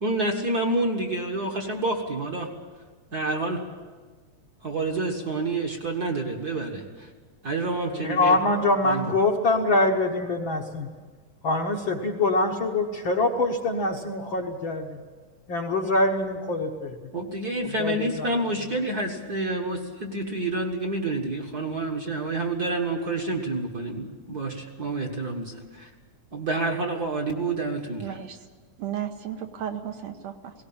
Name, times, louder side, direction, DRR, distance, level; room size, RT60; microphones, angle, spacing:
voice 1, 0.0-2.5 3.1-3.6 4.6-7.1 7.4-8.4 8.8-9.1 17.1-25.9 26.3-28.2, right 2 dB, 40° right, 2 dB, 1.5 m, -28 dB
voice 2, 8.0-10.9 11.4-15.0 15.5-16.9 17.8-18.3, left 2 dB, 55° left, 1 dB, 1.5 m, -24 dB
voice 3, 28.0-28.4 28.8-30.5, right 9 dB, 70° right, 6 dB, 2.1 m, -34 dB
18.0 x 18.0 x 8.7 m, 1.4 s
omnidirectional pair, 3.5 m